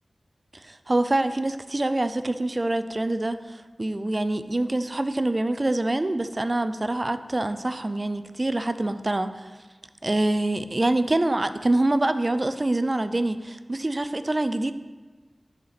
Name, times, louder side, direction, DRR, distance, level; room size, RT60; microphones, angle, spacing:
voice 1, 0.5-9.5 10.0-14.7, right 2 dB, 35° right, 11 dB, 0.4 m, -25 dB
10.5 x 4.3 x 4.0 m, 1.3 s
wide cardioid pair, 65°, 0 cm